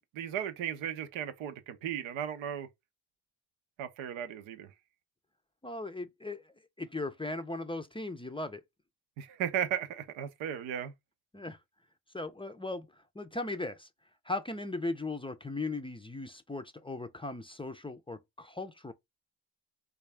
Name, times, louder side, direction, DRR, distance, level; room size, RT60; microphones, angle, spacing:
voice 1, 0.1-2.7 3.8-4.7 9.2-10.9, right 9 dB, 80° right, 0.6 m, -35 dB
voice 2, 5.6-6.4 6.8-8.6 11.3-11.6 12.1-12.9 13.2-13.9 14.3-18.9, left 2 dB, 10° left, 0.4 m, -37 dB
3.3 x 2.4 x 3.3 m
hypercardioid pair, 40°, 46 cm